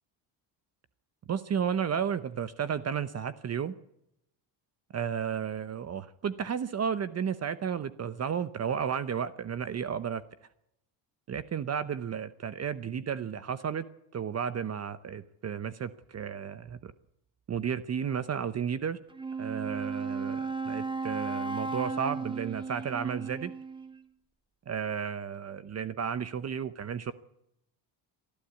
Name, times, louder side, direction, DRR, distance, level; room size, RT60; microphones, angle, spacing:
voice 1, 1.3-3.7 4.9-10.2 11.3-13.8 14.1-16.9 17.5-19.0 19.4-23.5 24.7-27.1, right 7 dB, 35° right, 15 dB, 0.8 m, -33 dB
Wind instrument woodwind instrument, 19.1-24.0, right 4 dB, 10° right, 1.2 m, -35 dB
29.0 x 12.0 x 8.3 m, 0.81 s
cardioid pair, 125°, 48 cm